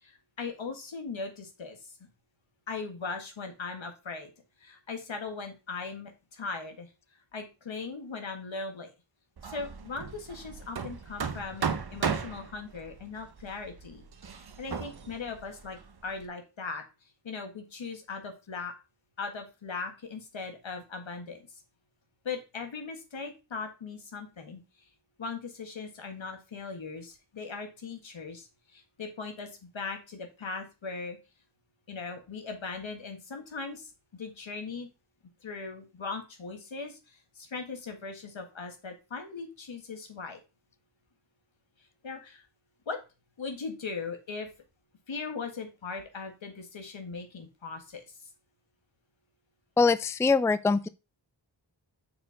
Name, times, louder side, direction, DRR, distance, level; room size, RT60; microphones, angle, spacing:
voice 1, 0.0-1.9 2.7-4.3 4.6-6.9 7.3-8.9 9.5-14.0 14.3-16.8 17.2-18.7 19.2-21.5 22.2-24.6 25.2-31.2 31.9-34.9 35.4-40.4 42.0-42.5 42.9-43.0 43.4-44.5 45.1-48.0, left 4 dB, 80° left, 1.8 m, -39 dB
Hammer, 9.4-16.2, right 6 dB, 55° right, 0.9 m, -36 dB
voice 2, 49.8-50.9, left 4 dB, 5° left, 0.4 m, -23 dB
6.7 x 4.5 x 5.0 m
cardioid pair, 55°, 46 cm